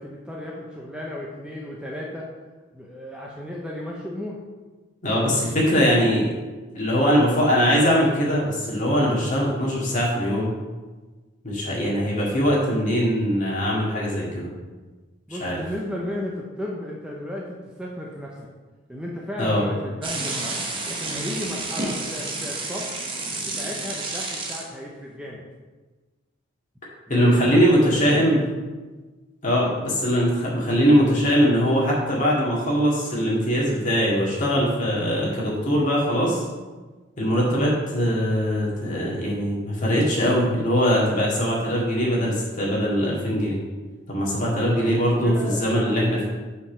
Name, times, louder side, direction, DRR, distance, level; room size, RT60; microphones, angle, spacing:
voice 1, 0.0-2.2 2.7-4.4 15.3-18.3 18.9-20.6 20.9-22.9 23.5-25.4 27.1-28.4 44.6-45.8, left 1 dB, 5° right, -3 dB, 0.7 m, -34 dB
voice 2, 5.0-6.3 6.7-10.5 11.4-14.5 15.3-15.6 19.4-19.6 27.1-28.4 29.4-36.4 37.2-43.6 44.1-46.3, equal, 40° left, -5 dB, 2.2 m, -21 dB
sound 1, 20.0-24.6, right 2 dB, 25° right, 1.0 m, -30 dB
5.7 x 5.3 x 6.0 m, 1.3 s
head